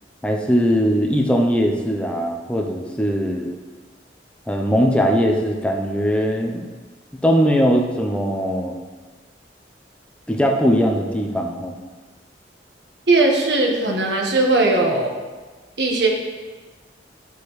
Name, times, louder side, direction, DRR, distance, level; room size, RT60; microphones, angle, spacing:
voice 1, 0.2-3.5 4.5-6.7 7.2-8.8 10.3-11.7, equal, 5° left, 1 dB, 0.7 m, -20 dB
voice 2, 13.1-15.1 15.8-16.1, right 2 dB, 70° right, 0 dB, 1.4 m, -18 dB
11.5 x 6.9 x 3.2 m, 1.3 s
head